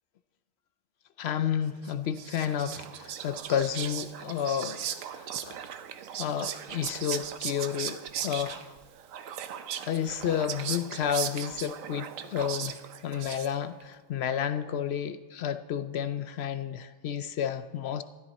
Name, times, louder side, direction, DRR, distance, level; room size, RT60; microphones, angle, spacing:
voice 1, 1.2-4.8 5.2-5.6 6.2-8.7 9.9-12.8 13.0-18.0, left 9 dB, 65° left, 11 dB, 0.7 m, -31 dB
Whispering, 1.8-13.8, right 9 dB, 75° right, 1.1 m, -38 dB
13.5 x 13.0 x 4.1 m, 1.3 s
omnidirectional pair, 1.4 m